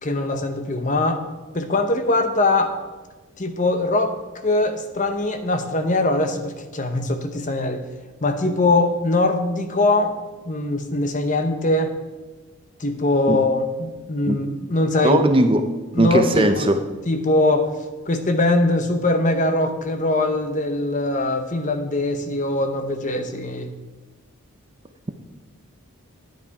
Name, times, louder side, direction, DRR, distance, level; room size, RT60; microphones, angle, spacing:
voice 1, 0.0-1.2 1.5-2.8 3.4-4.1 4.4-7.8 8.2-10.1 10.5-11.9 12.8-15.3 15.9-16.7 17.1-17.7 18.1-23.7, left 2 dB, 35° left, 8 dB, 0.9 m, -22 dB
voice 2, 15.0-15.6 16.0-16.8, right 1 dB, 25° right, 7 dB, 0.5 m, -18 dB
10.0 x 9.2 x 4.7 m, 1.2 s
head